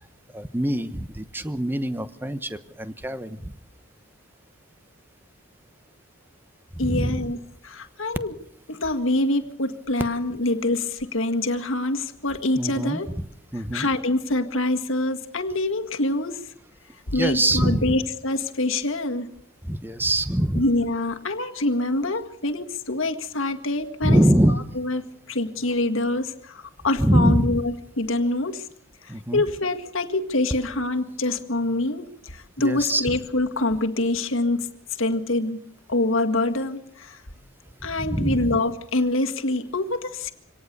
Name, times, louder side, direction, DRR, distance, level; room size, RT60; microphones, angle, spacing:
voice 1, 0.3-3.5 6.7-7.3 12.5-13.3 13.5-13.9 17.1-18.0 19.6-20.6 24.0-24.6 27.0-27.6 29.1-29.4 32.6-33.1 38.0-38.6, right 1 dB, 10° right, 11 dB, 1.1 m, -23 dB
voice 2, 6.8-7.4 7.6-8.4 8.7-13.1 13.7-16.4 17.1-19.3 20.6-24.2 24.8-25.0 25.3-28.7 29.0-34.7 35.0-35.6 35.9-37.2 37.8-40.3, left 2 dB, 65° left, 6 dB, 1.8 m, -25 dB
25.5 x 18.0 x 6.8 m, 0.67 s
head